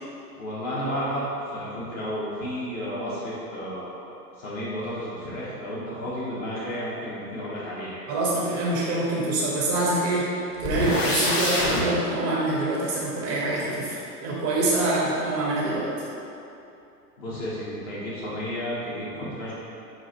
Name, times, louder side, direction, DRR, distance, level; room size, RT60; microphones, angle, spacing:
voice 1, 0.4-4.0 4.4-8.0 17.2-19.5, equal, 55° left, -8 dB, 1.1 m, -32 dB
voice 2, 8.1-10.3 10.6-15.9, right 2 dB, 15° right, -6 dB, 0.4 m, -25 dB
sound 1, 10.6-11.8, left 1 dB, 25° left, 0.7 m, -25 dB
5.8 x 2.5 x 2.8 m, 2.7 s
figure-of-eight pair, 100°, 48 cm